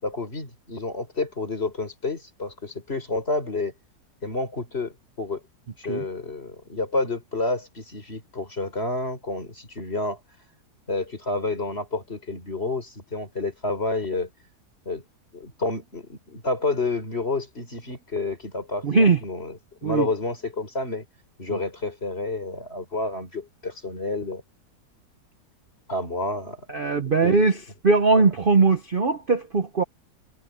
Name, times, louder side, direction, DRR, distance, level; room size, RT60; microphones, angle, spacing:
voice 1, 0.0-3.7 4.2-5.4 5.8-10.2 10.9-14.3 14.8-15.0 15.3-21.0 21.4-24.4 25.9-27.5 28.1-28.2, left 2 dB, 35° left, 4.8 m, -30 dB
voice 2, 18.8-19.2 19.8-20.1 21.5-21.6 26.7-27.6 27.8-29.8, right 4 dB, 40° right, 0.9 m, -20 dB
omnidirectional pair, 1.8 m